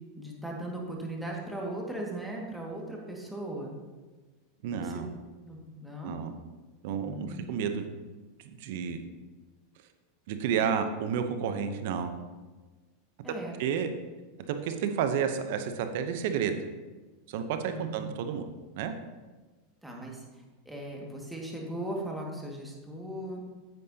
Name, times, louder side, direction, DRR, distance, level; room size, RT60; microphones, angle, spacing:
voice 1, 0.2-3.7 4.7-5.0 5.5-6.2 6.9-7.5 13.2-13.6 17.7-18.1 19.8-23.4, right 1 dB, 5° right, -2 dB, 1.9 m, -38 dB
voice 2, 4.6-5.1 6.0-6.3 6.8-7.9 8.4-9.0 10.3-12.1 13.6-13.9 14.5-16.6 17.3-18.5 18.7-18.9, right 7 dB, 65° right, 8 dB, 0.8 m, -31 dB
8.9 x 8.6 x 2.8 m, 1.3 s
hypercardioid pair, 110°, 0 cm